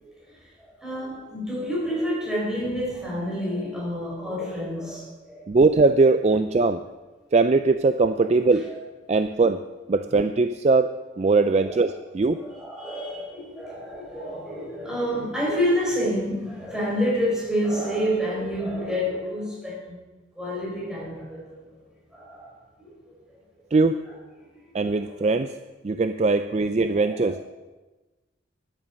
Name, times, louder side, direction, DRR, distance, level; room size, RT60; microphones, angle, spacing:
voice 1, 0.0-5.5 8.7-8.8 11.5-11.8 12.3-20.0 20.4-21.6 22.1-22.9 23.3-23.4 24.1-24.2 24.5-25.4 27.0-27.3, equal, 5° right, -6 dB, 5.1 m, -29 dB
voice 2, 5.5-6.8 7.3-8.7 9.1-9.6 9.9-10.9 11.2-12.4 23.7-24.0 24.7-25.5 25.8-27.4, right 3 dB, 35° right, 10 dB, 0.3 m, -20 dB
13.0 x 11.5 x 5.2 m, 1.2 s
head